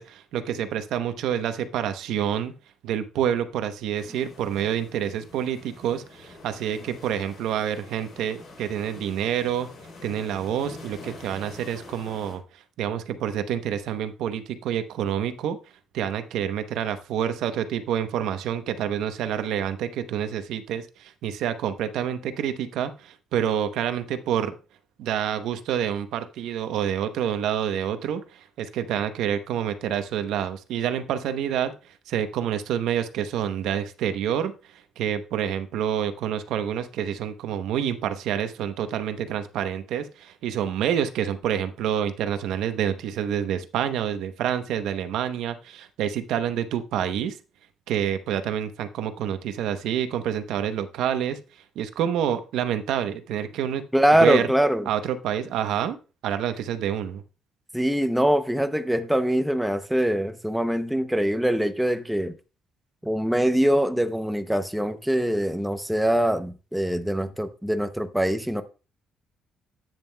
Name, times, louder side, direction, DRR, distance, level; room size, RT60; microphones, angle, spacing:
voice 1, 0.0-2.5 2.8-9.7 10.0-12.4 12.8-15.6 15.9-24.5 25.0-31.7 32.1-34.5 35.0-47.4 47.9-51.4 51.8-53.8 54.2-54.4 54.9-56.0 56.2-57.2, right 9 dB, 80° right, 0.8 m, -27 dB
sound 1, 3.9-12.4, left 3 dB, 50° left, 3.6 m, -46 dB
voice 2, 53.9-54.9 57.7-62.3 63.0-68.6, equal, ahead, 0.6 m, -23 dB
10.5 x 9.0 x 2.2 m
cardioid pair, 175°, 0 cm